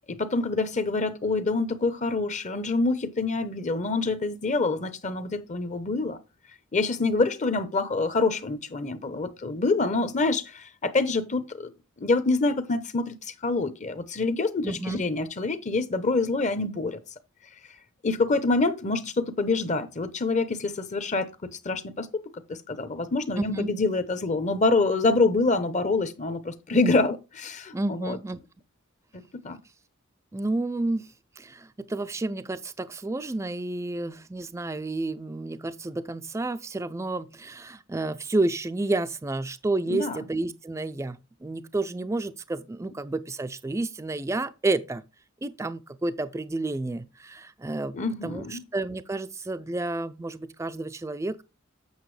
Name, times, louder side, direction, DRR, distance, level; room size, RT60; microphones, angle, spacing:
voice 1, 0.1-6.2 6.7-11.7 12.0-17.0 18.0-22.2 22.5-28.2 29.1-29.6 39.9-40.2 47.9-48.6, left 3 dB, 35° left, 0.8 m, -26 dB
voice 2, 14.6-15.0 23.4-23.7 27.7-28.4 30.3-31.1 31.4-45.0 45.4-48.0 48.2-51.4, right 2 dB, 15° right, 0.3 m, -30 dB
8.1 x 6.5 x 3.2 m
head